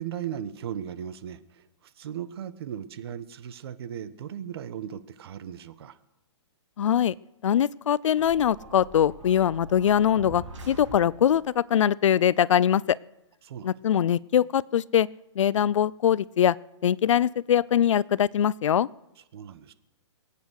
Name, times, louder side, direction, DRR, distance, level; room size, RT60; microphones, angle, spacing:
voice 1, 0.0-6.0 13.4-13.7 15.5-15.7 19.2-19.7, right 9 dB, 55° right, 13 dB, 1.2 m, -37 dB
voice 2, 6.8-7.1 7.4-13.0 13.6-15.1 15.4-16.6 16.8-18.9, left 9 dB, 80° left, 23 dB, 0.5 m, -22 dB
sound 1, 8.2-11.5, right 2 dB, 85° right, 5.9 m, -43 dB
23.0 x 8.5 x 6.4 m, 0.93 s
hypercardioid pair, 150°, 16 cm